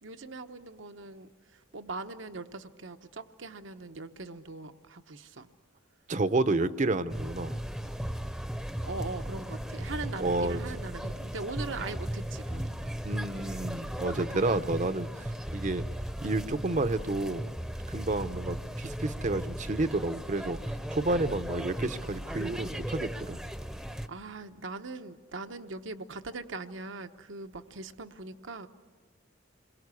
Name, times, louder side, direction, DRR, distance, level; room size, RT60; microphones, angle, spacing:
voice 1, 0.0-5.5 6.4-6.6 8.8-13.0 14.1-14.5 24.1-28.7, right 3 dB, 75° right, 9 dB, 1.0 m, -41 dB
voice 2, 6.1-7.6 10.2-10.6 13.0-15.8 16.2-17.5 17.9-20.6 20.9-23.4, right 2 dB, 40° right, 12 dB, 0.7 m, -30 dB
sound 1, 7.1-24.1, equal, ahead, 0.8 m, -36 dB
28.0 x 23.0 x 8.3 m, 1.4 s
head